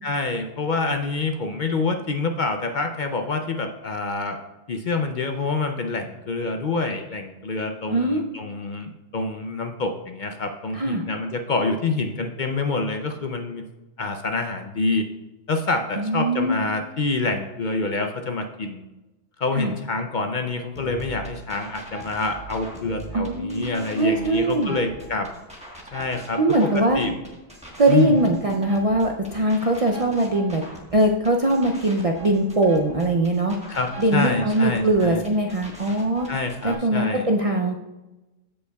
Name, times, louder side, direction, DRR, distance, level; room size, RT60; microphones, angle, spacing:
voice 1, 0.0-4.4 4.7-13.6 14.0-15.1 15.5-18.9 19.4-25.3 25.9-26.4 26.7-27.2 27.9-28.2 33.7-35.2 36.3-37.3, left 3 dB, 55° left, 5 dB, 0.6 m, -27 dB
voice 2, 7.9-8.2 10.7-11.0 16.0-16.6 19.6-19.7 23.1-24.8 26.4-27.0 27.8-30.6 30.9-33.6 34.0-36.3 36.6-37.8, right 1 dB, 45° right, 1 dB, 0.5 m, -21 dB
sound 1, 20.7-36.7, right 2 dB, 5° right, 1.2 m, -41 dB
14.5 x 5.5 x 2.3 m, 1.1 s
omnidirectional pair, 1.2 m